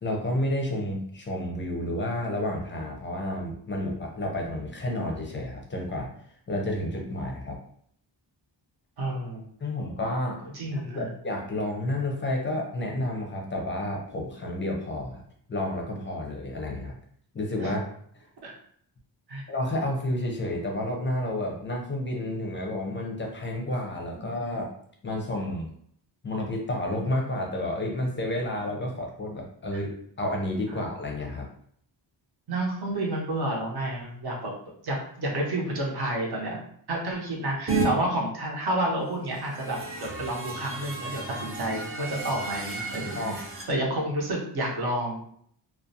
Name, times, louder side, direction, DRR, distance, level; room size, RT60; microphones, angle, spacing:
voice 1, 0.0-6.1 6.5-7.6 9.6-10.4 10.7-15.2 15.5-16.9 17.3-17.9 19.5-24.7 25.0-25.7 26.2-31.5 43.1-43.4, left 1 dB, 25° left, 0 dB, 0.4 m, -30 dB
voice 2, 9.0-9.4 10.5-11.1 17.6-17.7 18.4-18.5 19.3-19.4 30.7-30.8 32.5-34.5 34.8-36.6 36.9-45.2, right 1 dB, 60° right, -2 dB, 0.7 m, -30 dB
sound 1, 37.7-37.9 39.3-43.6, right 3 dB, 30° right, 0.4 m, -33 dB
2.4 x 2.0 x 2.6 m, 0.63 s
wide cardioid pair, 165°, 45 cm